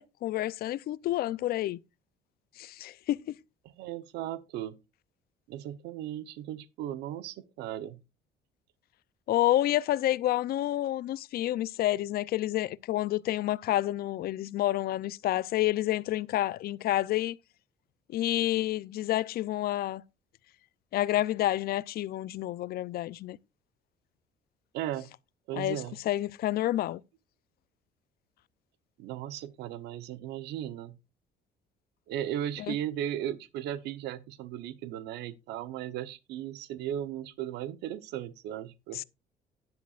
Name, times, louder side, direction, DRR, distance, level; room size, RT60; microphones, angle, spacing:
voice 1, 0.0-1.8 2.6-3.3 9.3-17.4 18.1-20.0 20.9-23.4 25.5-25.8 26.1-27.0 32.7-32.8 38.9-39.0, left 14 dB, 65° left, 0.5 m, -29 dB
voice 2, 3.8-4.8 5.5-8.0 24.7-25.1 25.5-25.9 29.0-31.0 32.1-39.0, right 11 dB, 85° right, 0.9 m, -36 dB
12.0 x 10.5 x 2.5 m
cardioid pair, 110°, 17 cm